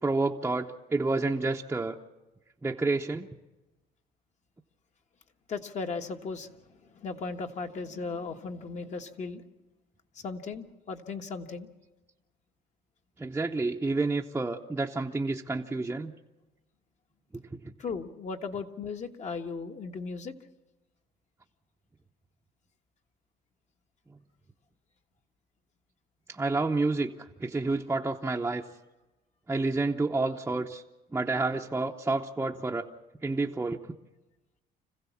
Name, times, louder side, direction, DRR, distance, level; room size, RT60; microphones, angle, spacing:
voice 1, 0.0-2.0 2.6-3.3 13.2-16.1 17.3-17.6 26.3-28.6 29.5-30.8 31.1-32.9 33.2-33.8, right 3 dB, 10° right, 0 dB, 0.8 m, -29 dB
voice 2, 5.5-9.4 10.1-11.7 17.8-20.3, left 4 dB, 45° left, 5 dB, 1.4 m, -37 dB
26.0 x 15.5 x 7.2 m, 1.1 s
cardioid pair, 110°, 17 cm